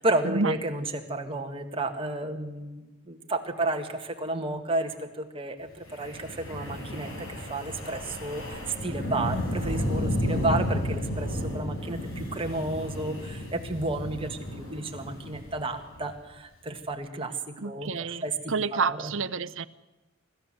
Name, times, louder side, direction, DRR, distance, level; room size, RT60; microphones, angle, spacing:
voice 1, 0.0-17.3 17.6-17.9 18.2-19.1, right 2 dB, 25° right, 4 dB, 1.8 m, -32 dB
Wind, 5.9-16.1, equal, 70° left, 5.2 m, -32 dB
voice 2, 17.6-19.7, right 4 dB, 65° right, 13 dB, 0.7 m, -29 dB
24.5 x 13.5 x 7.9 m, 1.1 s
head